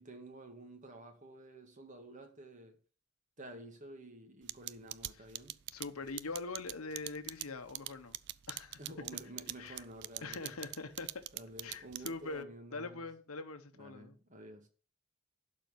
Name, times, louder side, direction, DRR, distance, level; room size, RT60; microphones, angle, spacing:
voice 1, 0.0-2.8 3.4-5.6 8.8-10.6 11.3-13.0 13.7-14.7, right 1 dB, 35° right, 2.0 m, -51 dB
sound 1, 4.5-12.4, right 15 dB, 50° right, 0.4 m, -41 dB
voice 2, 5.7-8.2 8.5-8.8 9.6-9.8 10.2-11.2 11.6-14.2, left 3 dB, 80° left, 1.0 m, -43 dB
11.5 x 4.4 x 7.3 m
head